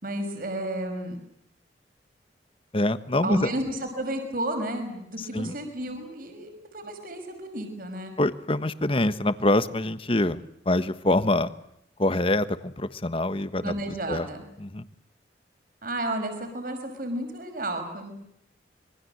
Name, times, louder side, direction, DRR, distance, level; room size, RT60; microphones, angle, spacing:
voice 1, 0.0-1.2 3.2-8.1 13.6-14.4 15.8-18.1, right 1 dB, 50° right, 6 dB, 5.6 m, -32 dB
voice 2, 2.7-3.5 5.2-5.5 8.2-11.5 12.0-14.3 14.6-14.9, left 1 dB, 30° left, 13 dB, 1.3 m, -25 dB
26.5 x 23.5 x 8.0 m, 0.75 s
head